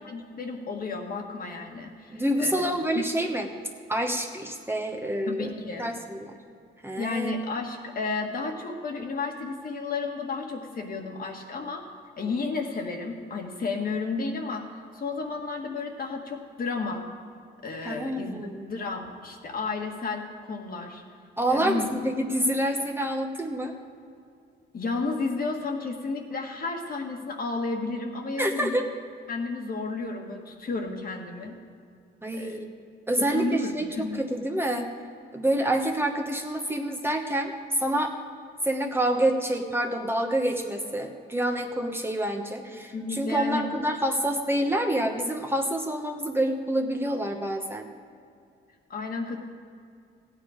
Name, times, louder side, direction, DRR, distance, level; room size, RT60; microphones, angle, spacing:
voice 1, 0.0-2.7 2.9-3.0 5.3-6.0 7.0-11.8 12.2-14.7 14.9-17.0 17.6-21.0 21.5-21.9 24.7-28.9 29.3-31.6 32.3-32.6 33.3-34.2 42.9-43.6 48.9-49.4, left 4 dB, 45° left, 2 dB, 1.7 m, -32 dB
voice 2, 2.1-3.5 3.9-5.5 5.8-6.3 6.8-7.3 17.8-18.7 21.4-23.7 28.4-28.8 32.2-32.7 33.1-34.9 35.3-38.1 38.6-47.9, right 1 dB, 10° right, 3 dB, 1.0 m, -27 dB
15.5 x 9.2 x 5.0 m, 2.4 s
cardioid pair, 90°, 20 cm